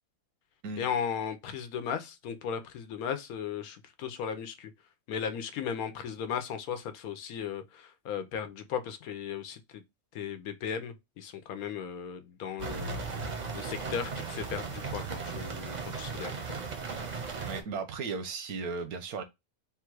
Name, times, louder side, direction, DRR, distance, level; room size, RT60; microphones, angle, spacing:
voice 1, 0.8-4.7 5.1-9.8 10.1-13.0 13.5-16.3, left 7 dB, 80° left, 1.1 m, -36 dB
sound 1, 12.6-17.6, right 4 dB, 45° right, 0.6 m, -37 dB
voice 2, 17.5-19.2, right 4 dB, 85° right, 1.2 m, -35 dB
3.7 x 2.3 x 4.5 m
omnidirectional pair, 1.6 m